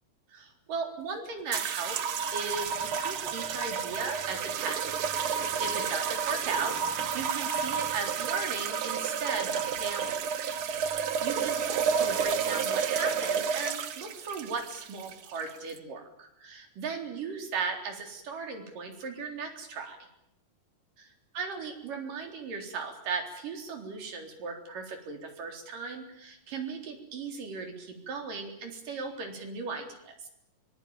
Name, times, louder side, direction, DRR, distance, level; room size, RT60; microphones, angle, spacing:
voice 1, 0.3-4.9 5.3-10.2 11.0-20.0 21.0-30.3, right 4 dB, 85° right, 3 dB, 5.5 m, -37 dB
sound 1, 1.5-15.8, right 7 dB, 55° right, 1.5 m, -31 dB
24.0 x 20.5 x 9.0 m, 0.80 s
omnidirectional pair, 3.7 m